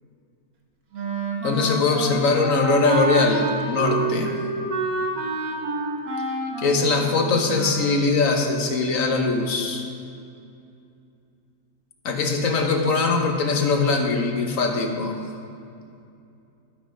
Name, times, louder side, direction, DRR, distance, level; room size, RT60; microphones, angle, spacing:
Wind instrument woodwind instrument, 0.9-8.0, right 2 dB, 70° right, 1.6 m, -28 dB
voice 1, 1.4-4.4 6.6-9.8 12.0-15.2, left 3 dB, 60° left, 3 dB, 1.4 m, -21 dB
12.0 x 5.6 x 5.1 m, 2.5 s
omnidirectional pair, 1.7 m